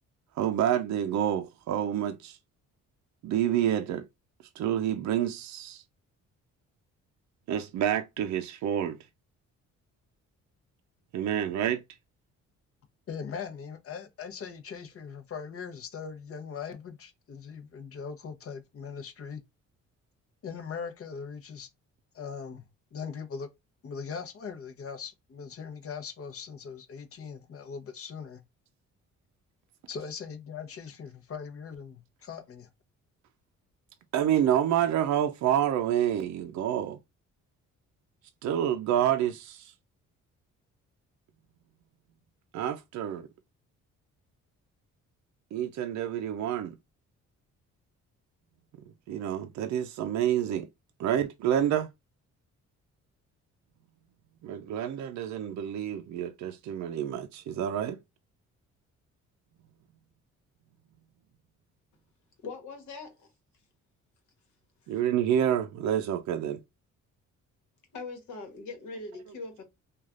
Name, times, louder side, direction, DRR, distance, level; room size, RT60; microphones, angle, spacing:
voice 1, 0.4-2.4 3.2-4.0 4.6-5.8 7.5-9.0 11.1-11.8 34.1-37.0 38.4-39.7 42.5-43.3 45.5-46.8 49.1-50.7 51.0-51.9 54.4-58.0 64.9-66.6, right 10 dB, 65° right, 0.5 m, -28 dB
voice 2, 13.1-19.4 20.4-21.7 22.1-22.7 22.9-23.5 23.8-28.4 29.9-32.7, left 6 dB, 50° left, 0.8 m, -40 dB
voice 3, 62.4-63.3 67.9-69.6, left 3 dB, 75° left, 1.2 m, -41 dB
3.2 x 2.3 x 2.3 m
cardioid pair, 90°, 30 cm